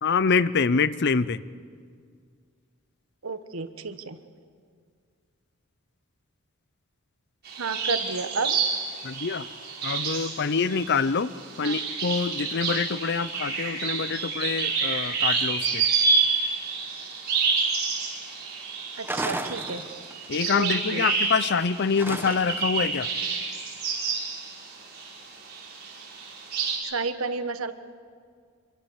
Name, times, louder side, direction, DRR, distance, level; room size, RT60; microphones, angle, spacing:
voice 1, 0.0-1.4 9.0-9.5 9.8-11.3 11.6-15.9 20.3-23.1, left 5 dB, 55° left, 16 dB, 0.7 m, -25 dB
voice 2, 3.2-4.2 7.6-8.6 11.6-11.8 19.0-19.8 20.5-21.1 26.8-27.7, right 3 dB, 85° right, 10 dB, 1.3 m, -31 dB
sound 1, 7.5-25.2 25.5-26.8, right 5 dB, 50° right, 6.1 m, -29 dB
sound 2, 19.0-20.3 22.0-22.7, right 2 dB, 10° right, 1.2 m, -33 dB
25.5 x 23.5 x 7.3 m, 2.1 s
head